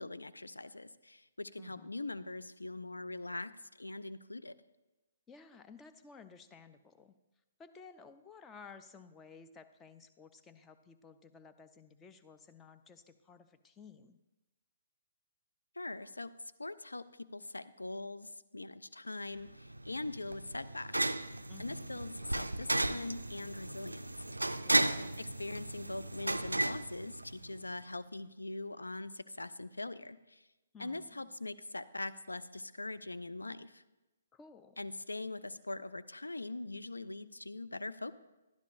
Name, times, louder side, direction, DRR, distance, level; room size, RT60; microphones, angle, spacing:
voice 1, 0.0-3.5 3.8-4.6 15.8-16.3 16.6-20.9 21.2-24.1 25.2-30.5 30.8-33.8 34.8-38.1, left 2 dB, 75° left, 14 dB, 0.4 m, -42 dB
voice 2, 1.6-2.0 5.3-7.1 7.6-14.2 21.5-22.0 24.6-25.2 30.7-31.3 34.3-34.9, left 5 dB, 15° left, 9 dB, 0.4 m, -55 dB
sound 1, 19.4-27.7, right 1 dB, 80° right, 0.3 m, -35 dB
12.0 x 11.5 x 2.5 m, 1.0 s
figure-of-eight pair, 130°, 0 cm